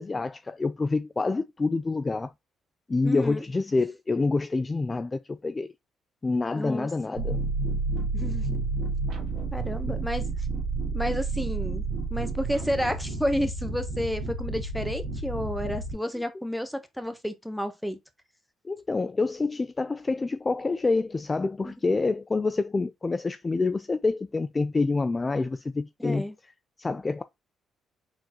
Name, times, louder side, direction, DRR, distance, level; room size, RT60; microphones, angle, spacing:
voice 1, 0.0-2.3 2.9-5.7 6.2-7.4 9.8-9.9 18.6-26.3 26.8-27.2, left 3 dB, 25° left, 0.3 m, -27 dB
voice 2, 3.0-3.4 6.5-7.2 8.1-8.6 9.5-10.2 10.9-11.8 12.1-18.0 21.6-21.7 26.0-26.3, equal, ahead, 0.9 m, -31 dB
sound 1, 7.2-15.9, right 3 dB, 70° right, 1.6 m, -30 dB
4.5 x 3.8 x 2.9 m
cardioid pair, 85°, 0 cm